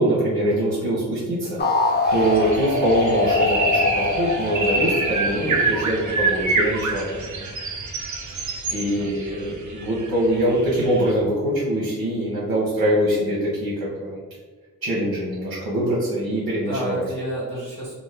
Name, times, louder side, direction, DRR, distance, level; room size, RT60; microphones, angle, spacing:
voice 1, 0.0-1.6 2.1-7.1 7.4-7.5 8.7-14.2 14.8-17.0, right 1 dB, 80° right, -6 dB, 0.9 m, -23 dB
sound 1, 1.6-6.1, left 3 dB, 30° left, 0.4 m, -23 dB
sound 2, 2.1-11.1, right 3 dB, 55° right, 0.6 m, -27 dB
voice 2, 8.7-9.1 16.5-17.9, right 1 dB, 25° right, -8 dB, 1.4 m, -31 dB
2.6 x 2.5 x 3.3 m, 1.4 s
wide cardioid pair, 70°, 36 cm